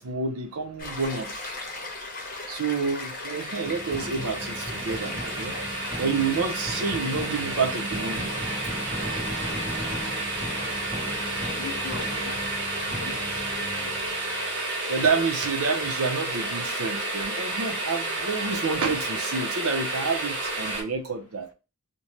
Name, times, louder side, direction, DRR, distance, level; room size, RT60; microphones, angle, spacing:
voice 1, 0.0-1.5 2.5-5.6 6.0-8.3 14.9-21.5, right 4 dB, 80° right, 0.6 m, -29 dB
Stream, 0.8-20.8, left 2 dB, 40° left, 0.8 m, -39 dB
sound 1, 2.7-20.8, right 2 dB, 55° right, 0.9 m, -32 dB
sound 2, 3.6-14.6, equal, 35° right, 1.1 m, -37 dB
voice 2, 11.6-13.2 13.5-14.1, left 7 dB, 80° left, 0.4 m, -41 dB
2.6 x 2.1 x 3.0 m
head